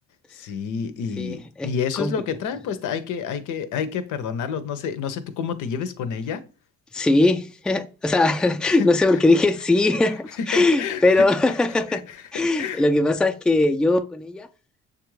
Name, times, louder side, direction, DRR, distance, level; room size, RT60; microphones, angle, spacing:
voice 1, 0.3-6.4 8.8-8.9 10.5-11.3 11.9-12.8, left 7 dB, 85° left, 0.6 m, -29 dB
voice 2, 1.2-2.2 6.9-12.0 12.3-14.5, left 2 dB, 5° left, 0.3 m, -20 dB
6.8 x 2.4 x 3.1 m
cardioid pair, 90°, 30 cm